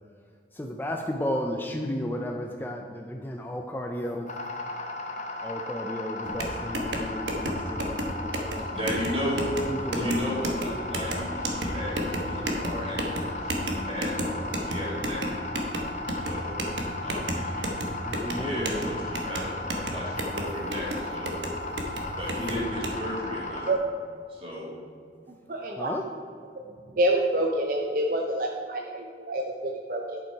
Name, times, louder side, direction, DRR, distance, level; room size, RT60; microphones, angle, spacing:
voice 1, 0.5-4.3 5.4-8.7 9.7-10.4 18.0-19.0 22.4-22.8 25.8-26.1, equal, 10° left, 2 dB, 0.4 m, -33 dB
sound 1, 4.3-23.7, left 2 dB, 40° left, 0.9 m, -36 dB
sound 2, 6.2-22.9, right 1 dB, 85° right, 1.1 m, -33 dB
voice 2, 8.7-9.4 9.9-15.4 16.1-16.6 17.0-17.7 18.3-21.4 22.1-23.6 24.3-24.7, equal, 30° right, -5 dB, 2.4 m, -34 dB
voice 3, 25.5-25.9 26.9-30.2, right 1 dB, 50° right, 0 dB, 0.6 m, -27 dB
10.5 x 5.8 x 4.6 m, 2.2 s
head